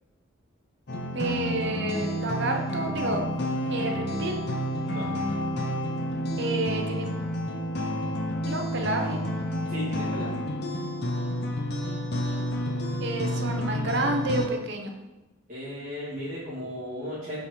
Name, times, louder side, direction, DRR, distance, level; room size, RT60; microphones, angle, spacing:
sound 1, 0.9-14.5, equal, 50° left, 0.8 m, -30 dB
voice 1, 1.1-3.3 3.7-4.4 6.4-7.1 8.4-9.2 13.0-14.9, right 2 dB, 55° right, 3 dB, 0.9 m, -29 dB
voice 2, 9.7-10.4 15.5-17.4, left 1 dB, 35° right, -11 dB, 2.0 m, -36 dB
7.1 x 5.2 x 3.8 m, 1.0 s
head